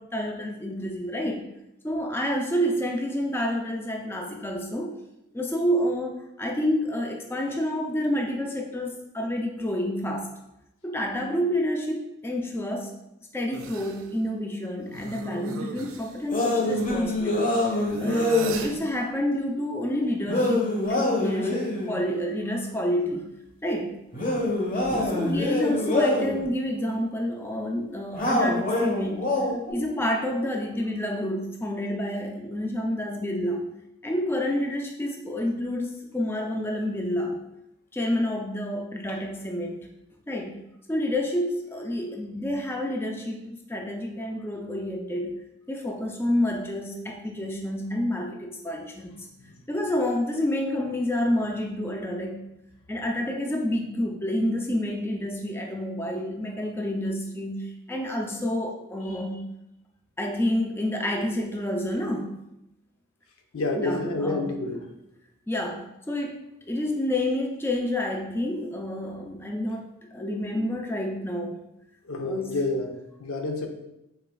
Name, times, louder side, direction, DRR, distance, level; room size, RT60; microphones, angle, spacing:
voice 1, 0.0-1.5 1.8-5.0 5.3-10.4 10.8-13.0 13.3-23.3 23.6-24.0 24.9-29.4 29.7-33.7 34.0-37.5 37.9-39.9 40.3-40.6 40.9-49.3 49.7-52.4 52.9-59.5 60.2-62.4 63.7-64.5 65.5-66.4 66.7-71.6 72.2-72.6, left 1 dB, 10° left, 1 dB, 0.4 m, -29 dB
sound 1, 13.5-14.1 14.8-16.9 17.9-18.8, right 4 dB, 80° right, 0.5 m, -38 dB
sound 2, 16.3-18.7 20.3-21.9 24.1-26.4 28.1-29.7, left 2 dB, 40° left, 1.1 m, -25 dB
voice 2, 63.5-64.9 70.2-70.7 72.0-73.7, left 2 dB, 90° left, 3 dB, 0.7 m, -30 dB
5.6 x 4.1 x 2.3 m, 0.87 s
head